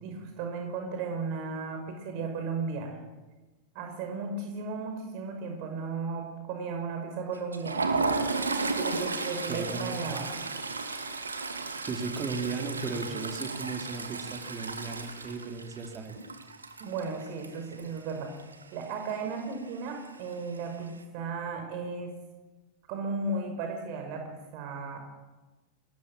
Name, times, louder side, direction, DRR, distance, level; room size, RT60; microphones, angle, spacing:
voice 1, 0.0-3.0 3.7-8.0 8.4-10.3 16.8-18.4 18.7-22.1 22.9-25.0, right 4 dB, 45° right, 4 dB, 5.6 m, -35 dB
Toilet flush, 7.3-18.1 18.4-18.6 18.9-19.1 20.0-20.6, right 3 dB, 75° right, 2.7 m, -34 dB
voice 2, 9.5-10.0 11.8-16.2, right 4 dB, 25° right, 4 dB, 3.9 m, -36 dB
27.0 x 21.0 x 7.6 m, 1.2 s
figure-of-eight pair, 90°, 0 cm